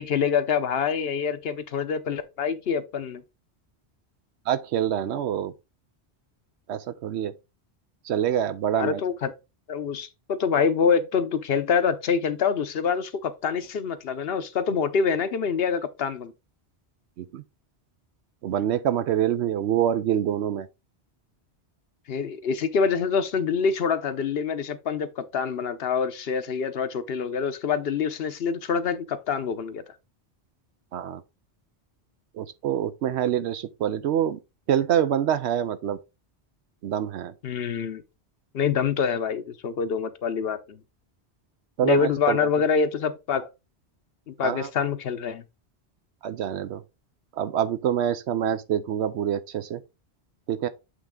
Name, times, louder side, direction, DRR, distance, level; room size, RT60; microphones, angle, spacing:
voice 1, 0.0-3.2 8.7-9.3 9.7-16.3 22.1-29.8 37.4-38.0 38.5-40.8 41.8-43.5 44.3-45.4, left 6 dB, 65° left, 0.9 m, -26 dB
voice 2, 4.5-5.5 6.7-7.3 8.1-9.0 17.2-17.4 18.4-20.7 30.9-31.2 32.4-34.4 34.7-36.0 36.8-37.3 41.8-42.5 44.4-44.7 46.2-46.8 47.4-49.8 50.5-50.7, right 10 dB, 80° right, 0.9 m, -26 dB
8.1 x 3.4 x 3.7 m
omnidirectional pair, 1.1 m